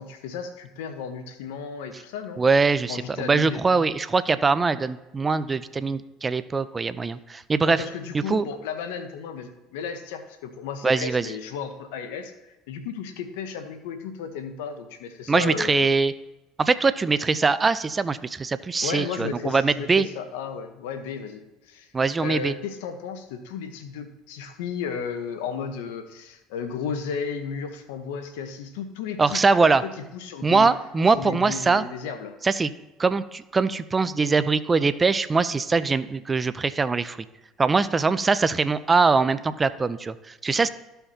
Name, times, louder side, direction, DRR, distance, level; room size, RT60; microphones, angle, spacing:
voice 1, 0.0-2.4 2.9-3.8 7.7-15.9 18.8-21.9 22.2-30.7 31.1-32.3, left 6 dB, 80° left, 8 dB, 1.0 m, -34 dB
voice 2, 2.4-7.8 8.3-8.4 10.8-11.3 15.3-16.1 16.6-20.1 21.9-22.5 29.2-29.8 30.4-31.8 32.4-32.7 33.0-37.2 37.6-40.7, right 4 dB, 25° right, 14 dB, 0.5 m, -22 dB
13.5 x 5.7 x 2.8 m, 0.99 s
hypercardioid pair, 80°, 0 cm